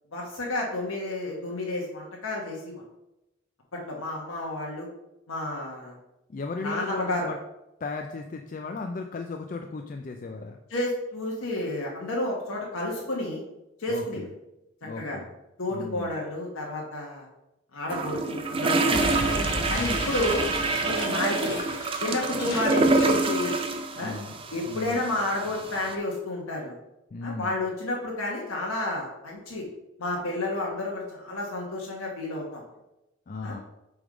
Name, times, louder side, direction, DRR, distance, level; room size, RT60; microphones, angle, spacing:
voice 1, 0.1-2.7 3.7-4.9 5.3-5.9 6.6-7.3 10.7-13.4 13.8-14.2 15.0-15.2 15.6-17.3 17.7-19.0 19.7-20.4 20.8-21.5 22.0-23.5 24.0-24.2 24.5-26.8 27.2-29.7 30.0-32.6 33.4-33.6, left 2 dB, 90° left, -2 dB, 1.2 m, -31 dB
voice 2, 6.3-7.4 7.8-10.6 13.9-14.3 14.8-15.3 15.7-16.2 18.9-20.1 24.0-24.4 24.7-25.0 27.1-27.5 33.3-33.6, left 3 dB, 40° left, 4 dB, 0.3 m, -36 dB
sound 1, 17.9-25.9, right 3 dB, 25° right, 0.5 m, -27 dB
Explosion, 18.9-23.7, left 1 dB, 60° left, 1.7 m, -34 dB
7.0 x 3.5 x 5.0 m, 0.93 s
head